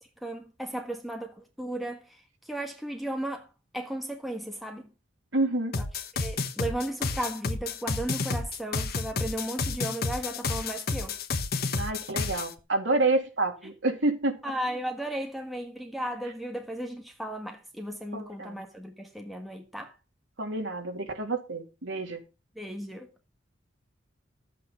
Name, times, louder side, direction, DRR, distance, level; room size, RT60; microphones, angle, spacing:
voice 1, 0.2-2.0 2.5-3.5 3.7-4.8 5.8-5.9 6.2-11.2 13.0-13.1 14.4-19.9 22.6-23.1, right 1 dB, ahead, 1.5 m, -35 dB
voice 2, 5.3-5.7 11.8-14.3 18.1-18.6 20.4-22.2, right 2 dB, 70° right, 3.0 m, -28 dB
Dance drum loop, 5.7-12.5, left 3 dB, 55° left, 1.2 m, -31 dB
12.5 x 8.3 x 5.2 m
head